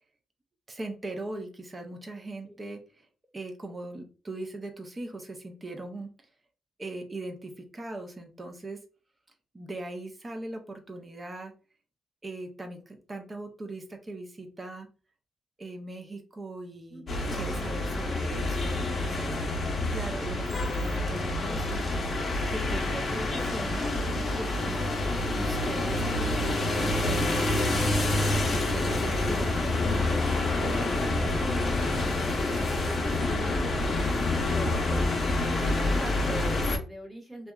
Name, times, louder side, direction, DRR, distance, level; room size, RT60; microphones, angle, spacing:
voice 1, 0.7-3.1 3.3-6.1 6.8-8.8 9.5-11.5 12.2-14.9 15.6-17.0 17.3-19.3 19.9-21.9 22.5-24.9 25.3-27.8 28.7-31.1, right 2 dB, 25° right, 4 dB, 0.5 m, -40 dB
voice 2, 16.9-17.3 26.1-26.4 32.5-35.0 35.5-37.5, right 1 dB, 5° right, 0 dB, 0.9 m, -42 dB
sound 1, 17.1-36.8, left 2 dB, 40° left, 0.8 m, -27 dB
2.7 x 2.2 x 2.2 m, 0.35 s
cardioid pair, 95°, 0 cm